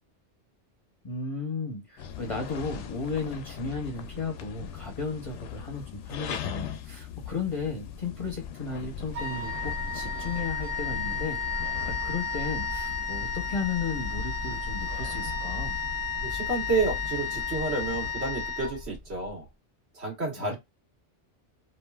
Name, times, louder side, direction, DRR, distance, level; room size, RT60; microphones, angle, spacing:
voice 1, 1.0-15.8 20.4-20.6, left 4 dB, 35° left, 0.7 m, -34 dB
sound 1, 2.0-18.1, left 8 dB, 80° left, 0.9 m, -40 dB
Wind instrument woodwind instrument, 9.1-19.2, left 4 dB, 35° right, 1.0 m, -33 dB
voice 2, 16.2-19.5 19.9-20.6, right 3 dB, 65° right, 1.6 m, -30 dB
3.0 x 2.4 x 2.2 m
omnidirectional pair, 1.2 m